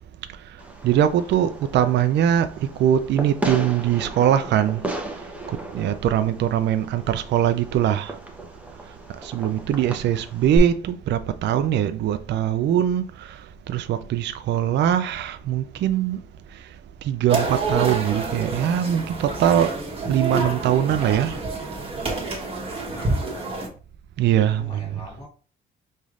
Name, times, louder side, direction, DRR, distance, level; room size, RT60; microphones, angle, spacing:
Fireworks, 0.6-10.6, right 2 dB, 5° right, 0.9 m, -35 dB
voice 1, 0.8-4.8 5.5-8.2 9.2-13.4 13.7-16.2 17.0-19.7 20.1-21.4 24.2-25.0, right 10 dB, 65° right, 0.4 m, -22 dB
sound 1, 17.3-23.7, right 3 dB, 30° right, 1.3 m, -28 dB
voice 2, 22.8-23.6 24.4-25.3, left 1 dB, 20° left, 1.4 m, -42 dB
5.4 x 3.1 x 2.5 m
cardioid pair, 90°, 20 cm